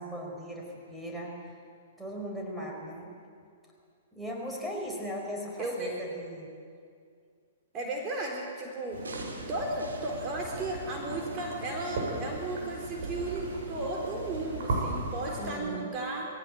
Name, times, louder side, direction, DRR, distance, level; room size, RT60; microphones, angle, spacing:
voice 1, 0.0-1.4 2.0-3.1 4.1-6.5 14.5-14.7 15.4-15.9, equal, ahead, -2 dB, 4.7 m, -38 dB
voice 2, 5.6-5.9 7.7-9.0 9.5-16.3, right 2 dB, 30° right, -1 dB, 3.8 m, -34 dB
sound 1, 8.9-15.5, right 2 dB, 60° right, 7.9 m, -37 dB
sound 2, 9.0-11.5 12.0-12.1, right 3 dB, 80° right, 3.6 m, -47 dB
21.0 x 17.0 x 8.7 m, 2.3 s
figure-of-eight pair, 115°, 0 cm